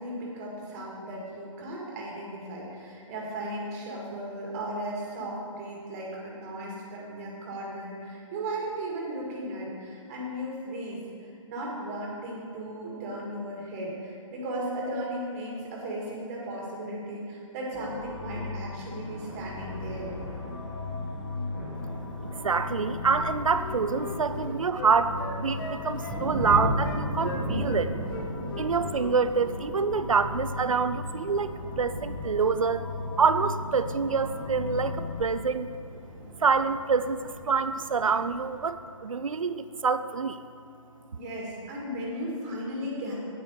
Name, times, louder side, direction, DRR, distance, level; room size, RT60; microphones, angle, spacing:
voice 1, 0.0-20.1 41.1-43.1, right 1 dB, 30° right, -3 dB, 2.1 m, -36 dB
sound 1, 17.7-35.2, left 3 dB, 20° left, 2.4 m, -38 dB
Thunder, 18.9-38.7, equal, 10° right, 1.5 m, -38 dB
voice 2, 22.4-27.9 28.6-32.9 33.2-35.7 36.4-40.4, right 5 dB, 80° right, 12 dB, 0.6 m, -26 dB
Wind instrument woodwind instrument, 23.1-27.8 28.1-29.2 29.4-29.6, left 4 dB, 40° left, 1.3 m, -39 dB
9.1 x 8.7 x 4.8 m, 2.7 s
figure-of-eight pair, 140°, 17 cm